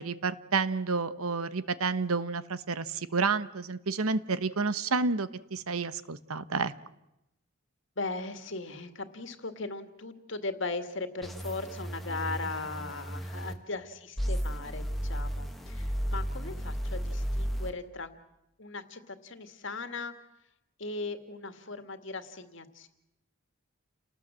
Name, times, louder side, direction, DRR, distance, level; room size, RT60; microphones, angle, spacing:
voice 1, 0.0-6.7, right 4 dB, 90° right, 14 dB, 1.1 m, -30 dB
voice 2, 8.0-18.1 18.6-20.1 20.8-22.9, left 3 dB, 60° left, 8 dB, 2.1 m, -38 dB
sound 1, 11.2-13.5 14.2-17.7, equal, ahead, 1.7 m, -34 dB
29.5 x 19.0 x 7.6 m, 0.90 s
head